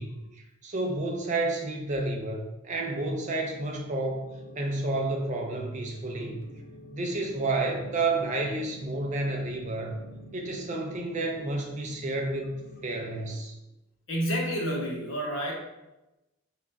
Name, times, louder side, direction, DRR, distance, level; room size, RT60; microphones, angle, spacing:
voice 1, 0.0-6.4 6.9-9.9 10.3-13.5, right 2 dB, 35° right, 2 dB, 0.4 m, -31 dB
sound 1, 2.8-13.3, equal, 45° left, 0.4 m, -48 dB
voice 2, 14.1-15.5, equal, 75° left, -2 dB, 1.0 m, -29 dB
3.3 x 2.4 x 3.3 m, 0.98 s
head